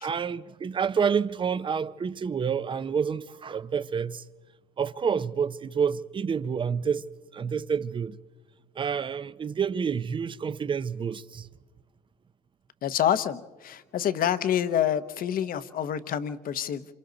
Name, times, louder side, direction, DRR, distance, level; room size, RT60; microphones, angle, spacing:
voice 1, 0.0-4.2 4.8-7.1 7.3-8.2 8.8-11.5, right 6 dB, 30° right, 0.6 m, -28 dB
voice 2, 12.8-16.8, left 10 dB, 55° left, 1.0 m, -27 dB
27.5 x 27.5 x 3.9 m
cardioid pair, 110°, 17 cm